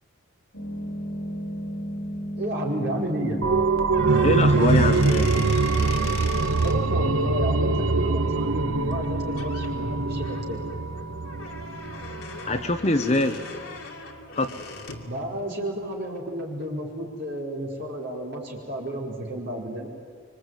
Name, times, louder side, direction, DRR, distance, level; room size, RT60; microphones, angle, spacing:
sound 1, 0.5-13.7, equal, 65° left, 5.5 m, -38 dB
voice 1, 2.4-3.6 6.6-10.6 15.0-19.9, right 1 dB, 50° right, -2 dB, 5.1 m, -31 dB
sound 2, 3.4-12.8 13.1-13.2, right 3 dB, 75° right, 0.7 m, -23 dB
sound 3, 3.8-6.8 8.9-9.1 9.4-9.7 10.2-15.1, left 4 dB, 85° left, 2.7 m, -39 dB
voice 2, 4.2-5.4 12.5-13.4 14.4-14.5, left 2 dB, 30° left, 8 dB, 1.2 m, -23 dB
25.5 x 25.0 x 9.3 m, 2.1 s
head